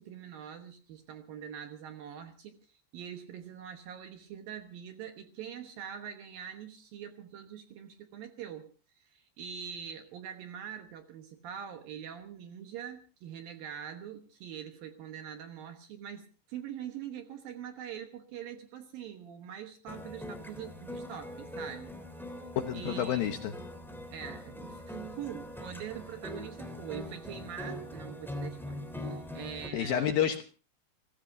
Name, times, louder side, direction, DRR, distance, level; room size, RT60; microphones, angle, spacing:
voice 1, 0.0-22.0 22.7-23.3 24.1-30.1, right 9 dB, 65° right, 2.5 m, -44 dB
sound 1, 19.9-29.7, left 1 dB, ahead, 2.4 m, -42 dB
voice 2, 22.6-23.5 29.7-30.4, left 10 dB, 70° left, 2.4 m, -29 dB
29.5 x 16.0 x 2.7 m
omnidirectional pair, 5.3 m